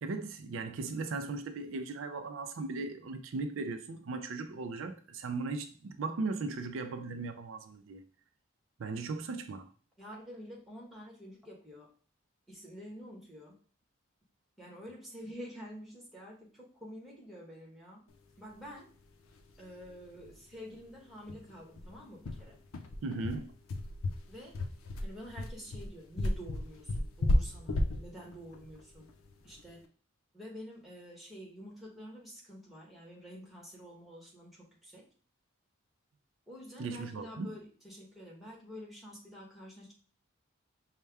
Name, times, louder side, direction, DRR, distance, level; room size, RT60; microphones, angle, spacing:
voice 1, 0.0-8.0 8.8-9.7 23.0-23.5 36.8-37.5, right 3 dB, 70° right, 0.4 m, -37 dB
voice 2, 10.0-11.9 12.5-13.6 14.6-18.0 18.4-18.9 19.6-22.6 24.3-24.6 25.0-29.1 29.4-29.8 30.3-35.1 36.5-39.9, equal, ahead, 1.1 m, -48 dB
sound 1, 19.4-19.5 19.8-19.9 20.2-20.4 20.7-20.8 21.3-29.7, left 1 dB, 85° left, 0.6 m, -33 dB
5.4 x 2.2 x 3.4 m
head